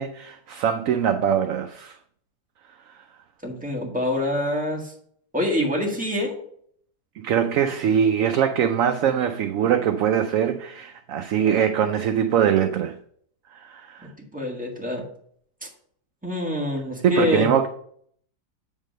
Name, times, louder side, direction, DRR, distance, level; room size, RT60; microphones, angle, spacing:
voice 1, 0.0-2.0 7.2-13.0 13.5-14.1 17.0-17.7, right 8 dB, 70° right, 0.8 m, -22 dB
voice 2, 3.4-4.9 5.3-6.4 14.3-15.0 16.2-17.5, left 1 dB, 5° right, 1.6 m, -25 dB
8.1 x 3.7 x 6.4 m
omnidirectional pair, 1.7 m